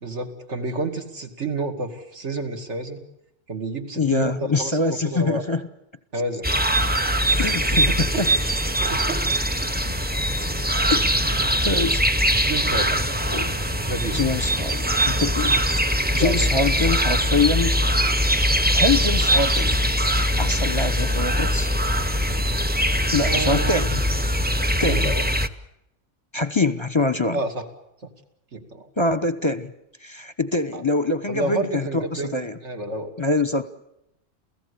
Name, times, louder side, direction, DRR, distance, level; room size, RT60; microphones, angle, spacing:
voice 1, 0.0-3.0 3.5-4.3 4.6-5.4 6.1-6.6 7.7-8.2 8.8-9.2 9.6-9.7 11.4-11.7 12.4-12.9 13.9-14.2 16.1-16.5 16.8-16.9 23.2-23.7 24.8-25.2 27.3-27.6 28.0-28.1 28.5-28.9 30.7-30.8 31.3-33.1, right 2 dB, 65° right, 5 dB, 2.6 m, -30 dB
voice 2, 4.0-5.6 7.4-8.3 10.9-12.1 13.3-13.6 14.1-15.8 16.1-17.8 18.1-19.8 20.4-21.7 23.1-24.0 24.8-25.1 26.3-27.4 29.0-29.7 30.0-32.6 33.2-33.7, left 3 dB, 25° left, 13 dB, 0.8 m, -24 dB
sound 1, 6.4-25.5, equal, 10° right, 0.6 m, -22 dB
28.5 x 16.5 x 8.3 m, 0.83 s
omnidirectional pair, 1.3 m